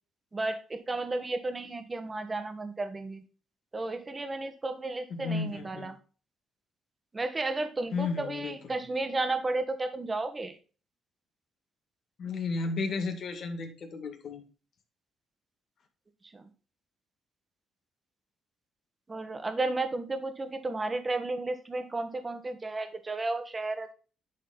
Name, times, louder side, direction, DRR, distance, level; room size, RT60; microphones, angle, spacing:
voice 1, 0.3-3.2 3.7-6.0 7.1-10.6 16.3-16.5 19.1-23.9, right 2 dB, 25° right, 8 dB, 1.3 m, -33 dB
voice 2, 5.1-5.9 7.9-8.5 12.2-14.4, left 4 dB, 60° left, 5 dB, 1.8 m, -33 dB
10.5 x 4.2 x 4.0 m, 0.36 s
cardioid pair, 90°, 0 cm